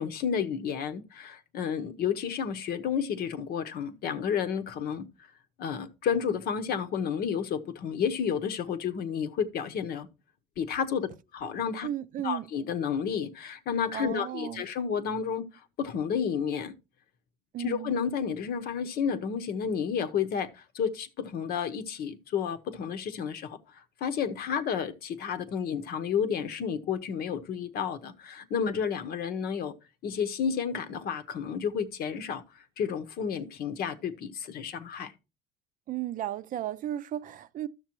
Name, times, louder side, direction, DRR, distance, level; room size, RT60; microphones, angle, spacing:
voice 1, 0.0-5.1 5.6-10.1 10.6-11.9 12.2-15.5 15.8-16.7 17.6-29.7 30.0-35.1, left 7 dB, 65° left, 0.9 m, -31 dB
voice 2, 11.8-12.5 13.9-14.6 17.5-18.0 35.9-37.7, right 12 dB, 55° right, 0.5 m, -34 dB
12.0 x 6.6 x 3.0 m
cardioid pair, 110°, 17 cm